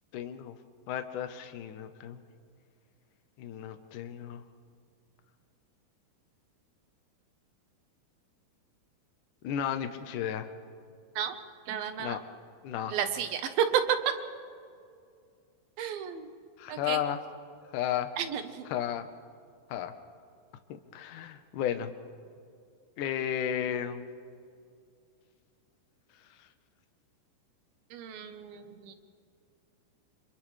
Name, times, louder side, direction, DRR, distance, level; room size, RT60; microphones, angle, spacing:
voice 1, 0.1-0.6 0.9-2.2 3.4-4.4 9.4-10.5 12.0-12.2 12.6-13.0 16.6-17.2 17.7-18.1 18.7-19.1 19.7-19.9 20.7-21.9 23.0-24.0, left 10 dB, 65° left, 8 dB, 2.3 m, -33 dB
voice 2, 11.7-12.2 12.9-14.0 15.8-16.3 16.7-17.0 18.2-18.7 27.9-29.0, right 8 dB, 75° right, 8 dB, 2.9 m, -31 dB
29.5 x 26.5 x 3.4 m, 2.3 s
omnidirectional pair, 4.5 m